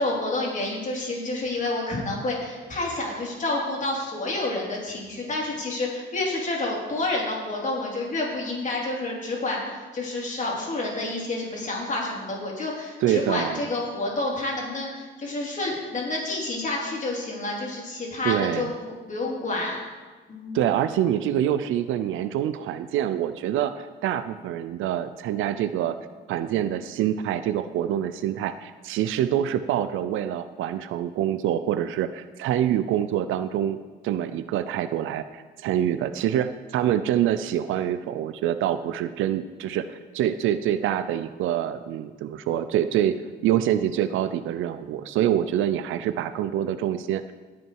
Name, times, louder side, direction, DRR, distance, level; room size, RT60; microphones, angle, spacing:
voice 1, 0.0-18.7 19.1-19.8 20.3-20.7, left 2 dB, 40° left, -2 dB, 3.4 m, -29 dB
voice 2, 13.0-13.6 18.2-18.7 20.5-26.0 26.3-33.8 34.0-43.2 43.4-47.3, right 11 dB, 85° right, 12 dB, 0.5 m, -26 dB
18.0 x 6.1 x 4.6 m, 1.3 s
cardioid pair, 90°, 20 cm